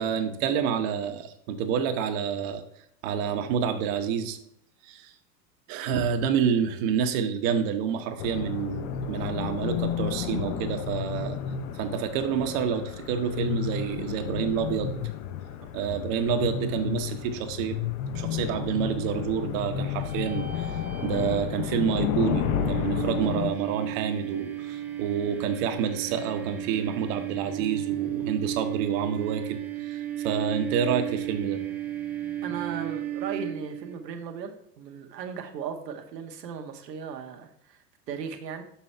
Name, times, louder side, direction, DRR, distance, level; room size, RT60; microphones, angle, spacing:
voice 1, 0.0-2.6 3.0-4.4 4.8-5.1 5.7-11.4 11.7-14.9 15.7-17.8 18.1-31.6, right 7 dB, 55° right, 7 dB, 1.0 m, -28 dB
sound 1, 8.2-23.5, left 9 dB, 55° left, 0.9 m, -32 dB
sound 2, 19.9-33.9, right 10 dB, 5° right, 0.4 m, -34 dB
voice 2, 32.4-38.6, right 6 dB, 80° right, 5 dB, 1.1 m, -37 dB
6.1 x 5.7 x 4.4 m, 0.72 s
hypercardioid pair, 100°, 49 cm